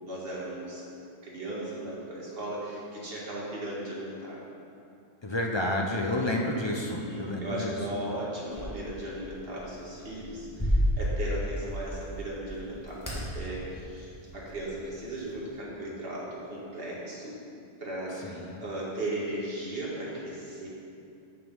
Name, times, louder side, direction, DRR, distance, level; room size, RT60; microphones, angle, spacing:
voice 1, 0.0-0.8 1.2-4.4 6.8-17.4 17.8-20.7, right 1 dB, 50° right, -6 dB, 2.0 m, -37 dB
voice 2, 5.2-7.8 18.1-18.7, left 1 dB, 35° left, 0 dB, 0.4 m, -30 dB
sound 1, 8.5-15.6, equal, 15° left, 1.6 m, -33 dB
6.8 x 6.5 x 5.3 m, 2.6 s
omnidirectional pair, 1.3 m